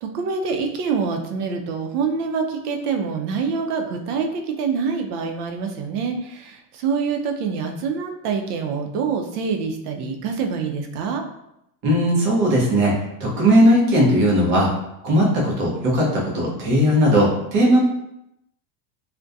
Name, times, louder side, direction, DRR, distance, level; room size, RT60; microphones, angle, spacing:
voice 1, 0.0-11.2, right 5 dB, 80° right, 3 dB, 0.6 m, -25 dB
voice 2, 11.8-14.7 15.0-17.8, equal, 25° right, -4 dB, 0.4 m, -18 dB
2.6 x 2.1 x 2.3 m, 0.82 s
supercardioid pair, 165°, 46 cm